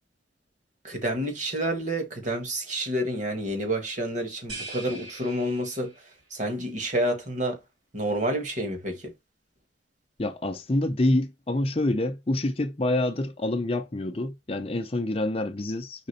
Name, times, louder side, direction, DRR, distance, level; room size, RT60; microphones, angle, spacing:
voice 1, 0.8-5.9 6.3-7.6 7.9-9.1, right 1 dB, 40° right, 1.6 m, -29 dB
sound 1, 4.5-6.2, right 2 dB, 65° right, 3.4 m, -41 dB
voice 2, 10.2-16.1, left 1 dB, 30° left, 0.6 m, -27 dB
5.1 x 3.8 x 5.4 m
head